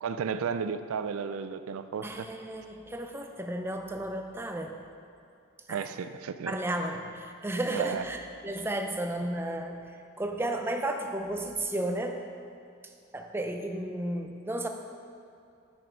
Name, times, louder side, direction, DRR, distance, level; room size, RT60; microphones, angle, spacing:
voice 1, 0.0-2.3 5.7-6.6 7.7-8.1, right 6 dB, 90° right, 11 dB, 0.4 m, -33 dB
voice 2, 2.0-4.8 5.7-5.9 6.5-12.2 13.1-14.7, right 1 dB, 10° right, 4 dB, 0.4 m, -33 dB
8.8 x 6.2 x 4.5 m, 2.6 s
head